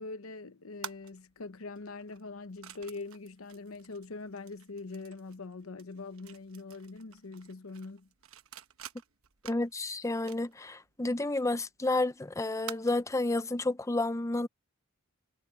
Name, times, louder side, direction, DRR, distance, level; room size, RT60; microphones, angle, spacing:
voice 1, 0.0-8.1, left 3 dB, 75° left, 0.9 m, -43 dB
sound 1, 0.8-13.3, right 9 dB, 75° right, 1.1 m, -51 dB
voice 2, 9.4-14.5, left 2 dB, 15° left, 0.6 m, -31 dB
head